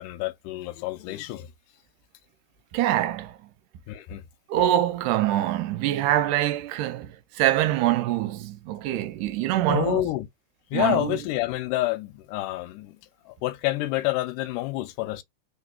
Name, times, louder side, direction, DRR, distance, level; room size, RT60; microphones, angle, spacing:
voice 1, 0.0-1.5 3.9-4.2 9.7-10.3 10.7-13.0 13.3-15.2, left 17 dB, 85° left, 2.2 m, -28 dB
voice 2, 2.7-3.4 4.5-10.1 10.7-11.2, right 13 dB, 80° right, 2.0 m, -24 dB
4.2 x 3.7 x 2.2 m
omnidirectional pair, 3.7 m